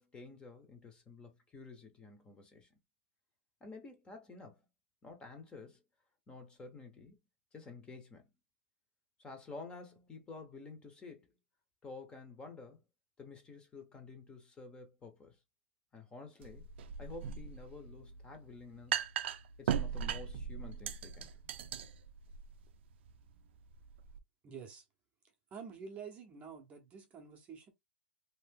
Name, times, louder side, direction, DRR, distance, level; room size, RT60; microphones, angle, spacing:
voice 1, 0.0-2.8 3.6-4.6 5.0-5.8 6.3-7.2 7.5-8.3 9.2-11.3 11.8-12.8 13.2-15.4 15.9-16.7 17.0-19.0 19.6-21.3, left 3 dB, 15° left, 0.8 m, -51 dB
sound 1, 16.4-24.2, right 8 dB, 60° right, 0.4 m, -39 dB
voice 2, 24.4-24.9 25.5-27.7, right 6 dB, 20° right, 0.7 m, -48 dB
2.8 x 2.6 x 3.5 m
hypercardioid pair, 150°, 7 cm